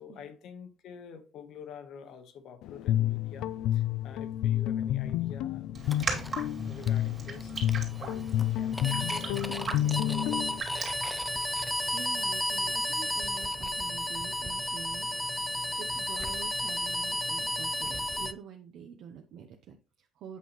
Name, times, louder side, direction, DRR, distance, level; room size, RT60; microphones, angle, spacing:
voice 1, 0.0-6.3 6.7-10.5, left 6 dB, 60° left, 1.1 m, -48 dB
Guitar, 2.6-10.6, left 12 dB, 80° left, 0.4 m, -30 dB
Raindrop, 5.7-12.0, right 4 dB, 30° right, 2.3 m, -39 dB
sound 1, 5.8-18.3, left 1 dB, 5° left, 0.4 m, -33 dB
voice 2, 11.9-15.5 15.8-20.4, right 7 dB, 60° right, 0.8 m, -47 dB
8.4 x 5.5 x 3.0 m
cardioid pair, 165°, 0 cm